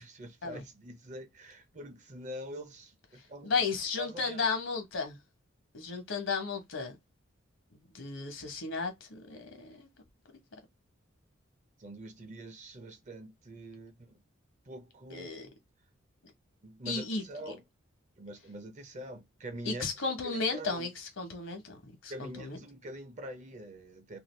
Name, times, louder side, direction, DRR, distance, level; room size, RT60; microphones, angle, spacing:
voice 1, 0.0-3.5 4.0-4.5 11.8-14.2 14.7-15.5 16.6-17.6 18.2-19.8 20.2-20.9 22.1-24.2, right 1 dB, 40° right, 0.6 m, -45 dB
voice 2, 3.4-5.2 5.7-7.0 7.9-9.9 15.1-15.5 16.8-17.5 19.6-22.6, left 4 dB, 75° left, 1.0 m, -34 dB
2.6 x 2.3 x 3.1 m
head